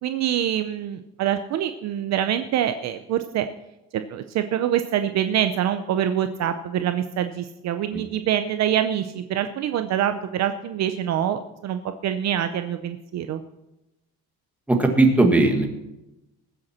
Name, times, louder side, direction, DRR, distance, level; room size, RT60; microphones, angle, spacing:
voice 1, 0.0-3.5 3.9-13.4, right 10 dB, 45° right, 9 dB, 0.7 m, -25 dB
voice 2, 14.7-15.7, right 2 dB, 5° right, 2 dB, 1.5 m, -17 dB
20.5 x 7.9 x 4.3 m, 0.95 s
cardioid pair, 175°, 37 cm